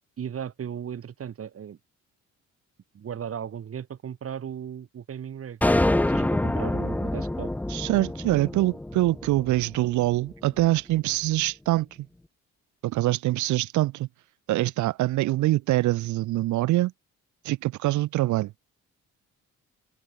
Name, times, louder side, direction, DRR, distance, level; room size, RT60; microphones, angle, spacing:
voice 1, 0.2-1.8 2.9-5.6 6.1-7.5, right 8 dB, 50° right, 1.9 m, -36 dB
sound 1, 5.6-10.0, left 1 dB, 5° left, 0.6 m, -26 dB
voice 2, 7.7-11.9 12.8-14.1 14.5-16.9 17.4-18.5, right 17 dB, 75° right, 0.5 m, -24 dB
cardioid pair, 90°, 30 cm